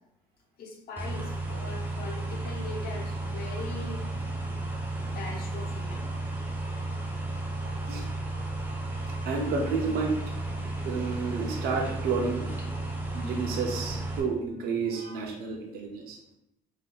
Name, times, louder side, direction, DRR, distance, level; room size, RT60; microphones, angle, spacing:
voice 1, 0.6-4.0 5.1-6.1, left 3 dB, 65° left, 0 dB, 0.9 m, -41 dB
sound 1, 1.0-14.2, right 2 dB, 10° right, 0.6 m, -33 dB
voice 2, 7.6-8.1 9.1-12.5 13.1-16.2, right 4 dB, 70° right, 0 dB, 0.6 m, -31 dB
3.6 x 2.7 x 2.4 m, 0.87 s
cardioid pair, 110°, 17 cm